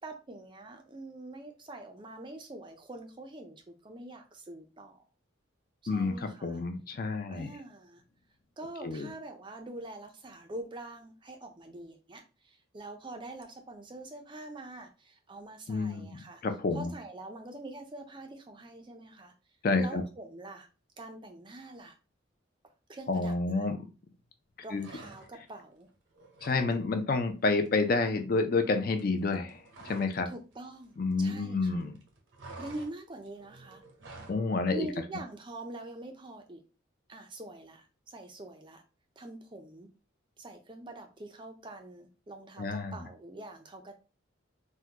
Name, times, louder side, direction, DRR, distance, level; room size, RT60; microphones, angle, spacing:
voice 1, 0.0-5.0 5.8-6.6 7.3-8.0 8.6-16.4 16.7-19.3 19.8-20.7 21.0-22.0 22.9-23.3 24.6-25.9 30.3-31.8 32.6-33.8 34.7-36.6 37.1-38.8 39.2-39.9 40.4-43.9, right 2 dB, 25° right, 5 dB, 0.4 m, -44 dB
voice 2, 5.9-7.5 8.8-9.1 15.7-16.9 19.6-20.0 23.1-23.8 24.7-24.9 26.4-30.3 31.0-32.0 34.3-34.9 42.6-43.0, left 3 dB, 45° left, 6 dB, 0.4 m, -29 dB
sound 1, 24.7-25.6 25.9-26.7 27.0-27.2 27.5-30.3 30.5-31.6 31.9-34.4, right 2 dB, 70° right, 0.7 m, -49 dB
3.6 x 2.1 x 2.8 m, 0.33 s
head